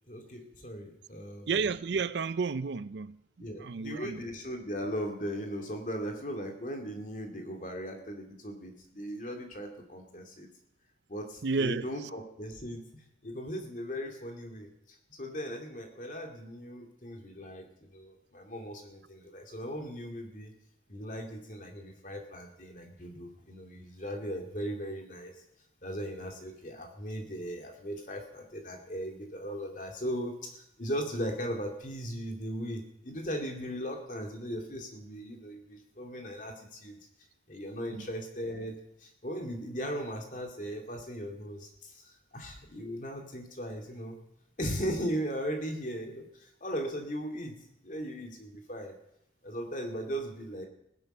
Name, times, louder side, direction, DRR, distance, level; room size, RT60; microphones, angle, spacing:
voice 1, 0.1-1.5 3.4-10.5 11.1-14.7 15.1-20.5 20.9-25.4 25.8-37.0 37.5-38.7 39.0-44.2 44.6-49.0 49.4-50.7, equal, 45° left, 2.4 m, -38 dB
voice 2, 1.5-3.2 3.6-4.3 11.4-12.1 37.9-38.1, right 4 dB, 80° right, 0.5 m, -32 dB
16.5 x 10.5 x 6.6 m
head